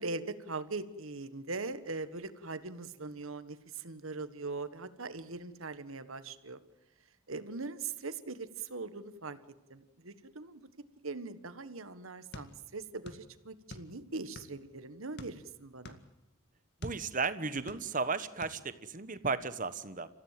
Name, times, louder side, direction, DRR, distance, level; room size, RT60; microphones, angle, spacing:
voice 1, 0.0-6.6 7.3-9.4 9.7-10.7 11.0-16.0, right 3 dB, 75° right, 12 dB, 1.5 m, -41 dB
sound 1, 12.3-13.3 13.5-14.7 15.1-17.0 17.5-18.1 18.4-18.6, left 1 dB, 50° left, 2.1 m, -49 dB
voice 2, 16.8-20.1, right 4 dB, 40° right, 13 dB, 1.2 m, -34 dB
27.5 x 15.5 x 7.6 m, 1.0 s
head